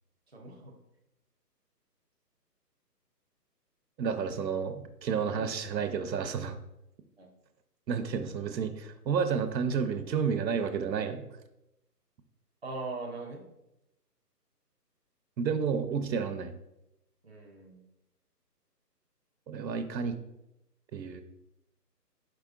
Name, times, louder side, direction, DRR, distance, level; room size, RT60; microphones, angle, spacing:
voice 1, 0.3-0.7 5.3-5.5 7.2-7.3 12.6-13.4 17.2-17.8, right 3 dB, 40° right, -1 dB, 0.5 m, -40 dB
voice 2, 4.0-6.6 7.9-11.2 15.4-16.5 19.5-20.1 20.9-21.2, right 6 dB, 85° right, 8 dB, 0.7 m, -31 dB
4.9 x 4.3 x 2.3 m, 0.88 s
hypercardioid pair, 175°, 49 cm